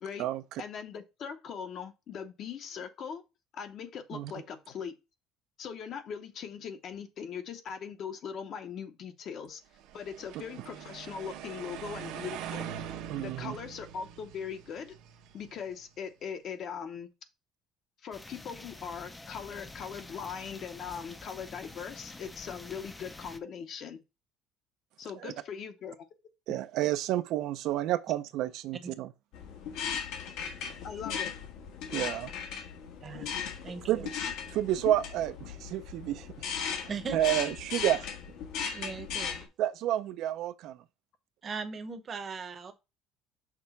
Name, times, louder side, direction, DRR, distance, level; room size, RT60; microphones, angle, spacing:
voice 1, 0.6-3.2 3.5-4.9 5.6-9.6 9.9-12.7 13.2-14.9 15.3-17.1 18.0-24.0 25.0-26.1 30.8-31.3, left 7 dB, 40° left, 0.8 m, -40 dB
sound 1, 9.8-15.9, right 9 dB, 85° right, 0.9 m, -43 dB
voice 2, 13.1-13.6 25.2-25.3 26.5-29.1 31.1-31.2 31.9-32.3 33.1-33.2 33.9-34.1 34.5-38.1 39.6-40.8, right 13 dB, 60° right, 0.4 m, -30 dB
sound 2, 18.1-23.4, left 2 dB, 10° left, 0.4 m, -47 dB
sound 3, 29.3-39.4, left 7 dB, 75° left, 1.4 m, -37 dB
voice 3, 33.0-33.3 33.6-34.0 36.9-37.5 38.7-39.5 41.4-42.7, right 5 dB, 25° right, 0.8 m, -39 dB
5.9 x 3.3 x 5.6 m
cardioid pair, 170°, 0 cm